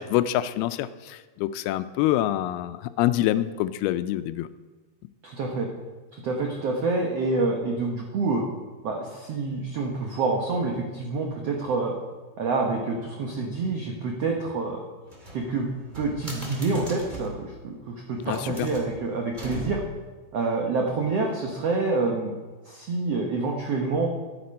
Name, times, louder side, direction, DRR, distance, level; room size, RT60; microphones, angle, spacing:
voice 1, 0.0-4.5 18.3-18.7, left 13 dB, 85° left, 13 dB, 2.4 m, -26 dB
voice 2, 5.2-5.7 6.1-8.4 8.8-11.9 12.4-14.8 15.3-15.7 16.0-19.8 20.3-22.3 22.6-24.1, right 3 dB, 80° right, 1 dB, 1.4 m, -27 dB
sound 1, 15.1-17.4 18.1-20.1, right 1 dB, 15° right, 1.9 m, -40 dB
12.0 x 10.0 x 5.2 m, 1.3 s
omnidirectional pair, 4.4 m